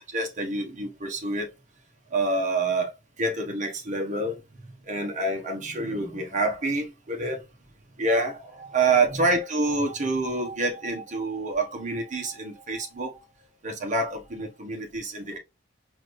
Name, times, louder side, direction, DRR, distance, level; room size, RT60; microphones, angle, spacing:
voice 1, 0.1-1.5 2.1-2.9 3.2-7.4 8.0-13.2 13.6-15.4, right 2 dB, 40° right, 1.1 m, -27 dB
4.1 x 2.6 x 3.1 m
head